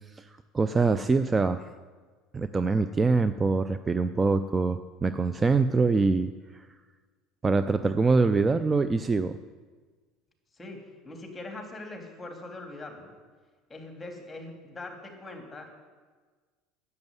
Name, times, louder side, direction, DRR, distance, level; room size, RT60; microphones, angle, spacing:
voice 1, 0.5-1.6 2.3-6.6 7.4-9.4, right 4 dB, 20° right, 11 dB, 0.5 m, -24 dB
voice 2, 10.5-13.1 13.7-15.7, left 2 dB, 20° left, 2 dB, 3.2 m, -42 dB
10.5 x 8.1 x 9.6 m, 1.4 s
supercardioid pair, 95°, 0 cm